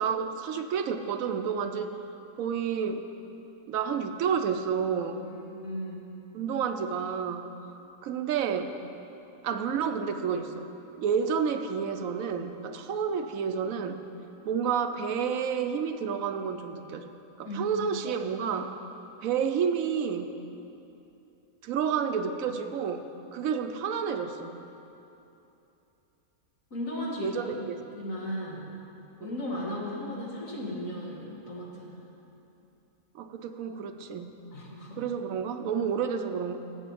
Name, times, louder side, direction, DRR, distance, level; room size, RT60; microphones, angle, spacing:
voice 1, 0.0-1.9 2.4-3.0 3.7-5.2 6.3-7.5 8.0-8.7 9.4-10.7 11.0-14.0 14.5-17.1 17.4-18.7 19.2-20.3 21.6-24.6 27.2-27.8 33.1-34.3 35.0-36.6, right 7 dB, 80° right, 8 dB, 1.0 m, -30 dB
voice 2, 5.2-6.1 17.4-17.8 26.7-27.5 28.0-28.7 29.2-32.0 34.5-35.0, left 1 dB, 70° left, -3 dB, 2.2 m, -36 dB
8.2 x 7.4 x 8.5 m, 2.9 s
omnidirectional pair, 1.4 m